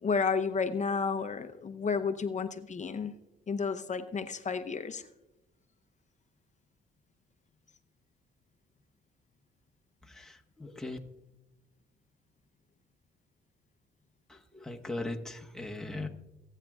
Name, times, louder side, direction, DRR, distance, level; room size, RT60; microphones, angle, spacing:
voice 1, 0.0-3.1 3.5-5.0, left 5 dB, 35° left, 9 dB, 0.8 m, -31 dB
voice 2, 10.0-11.0 14.3-16.1, left 2 dB, 5° left, 1 dB, 1.3 m, -39 dB
25.5 x 9.1 x 2.4 m, 0.95 s
cardioid pair, 90°, 20 cm